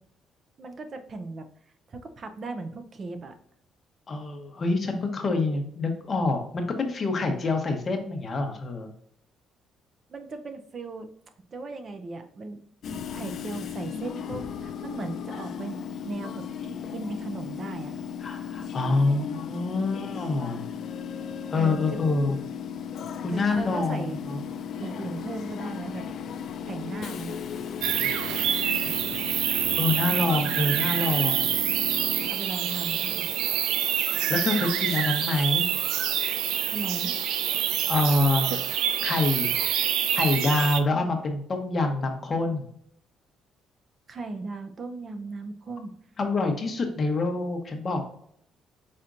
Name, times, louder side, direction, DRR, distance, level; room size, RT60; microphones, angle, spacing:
voice 1, 0.6-1.4 1.9-3.3 10.1-11.1 11.5-12.6 13.1-18.0 21.6-22.0 23.3-24.2 24.8-26.1 26.7-27.4 30.1-30.5 32.3-33.3 36.7-37.1 44.1-45.9, right 3 dB, 35° right, 8 dB, 0.6 m, -37 dB
voice 2, 4.1-8.9 18.2-20.6 21.5-22.4 23.2-24.4 28.7-29.0 29.5-31.5 34.3-35.6 37.9-38.5 39.0-39.5 40.1-42.7 46.2-48.0, left 2 dB, 30° left, 4 dB, 0.9 m, -26 dB
Train / Subway metro underground, 12.8-32.3, left 7 dB, 55° left, 0.4 m, -36 dB
sound 1, 27.8-40.8, right 10 dB, 90° right, 0.4 m, -26 dB
4.8 x 4.3 x 2.6 m, 0.65 s
cardioid pair, 135°, 0 cm